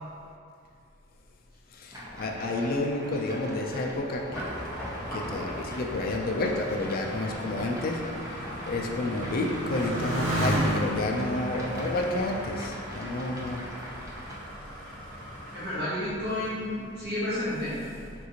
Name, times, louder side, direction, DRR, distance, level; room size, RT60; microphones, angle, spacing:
voice 1, 1.8-4.5 5.1-8.0 8.7-13.7, left 2 dB, 50° left, 1 dB, 0.3 m, -30 dB
sound 1, 1.9-14.4, equal, 15° right, 0.5 m, -42 dB
sound 2, 4.3-15.7, equal, 5° left, 0.9 m, -40 dB
Motorcycle, 4.7-13.5 14.2-14.8, right 1 dB, 75° right, 0.7 m, -34 dB
voice 2, 15.5-17.8, left 1 dB, 55° right, -10 dB, 1.1 m, -31 dB
3.7 x 2.5 x 2.8 m, 2.4 s
head